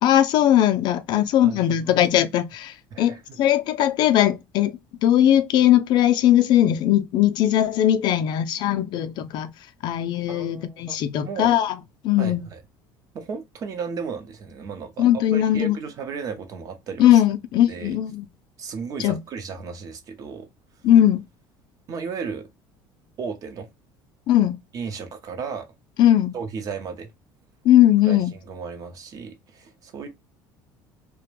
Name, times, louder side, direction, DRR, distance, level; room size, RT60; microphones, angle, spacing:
voice 1, 0.0-4.7 5.0-9.5 9.8-11.8 12.0-12.4 15.0-15.8 17.0-18.3 19.0-19.2 20.8-21.2 24.3-24.6 26.0-26.4 27.6-28.3, left 12 dB, 55° left, 0.4 m, -19 dB
voice 2, 1.1-1.9 2.9-3.4 10.3-11.6 12.2-12.6 13.1-17.2 17.7-18.0 18.6-20.5 21.9-22.5 23.2-23.7 24.7-25.7 26.3-27.1 28.1-30.1, right 5 dB, 45° right, 0.7 m, -35 dB
2.4 x 2.1 x 3.0 m
cardioid pair, 125°, 9 cm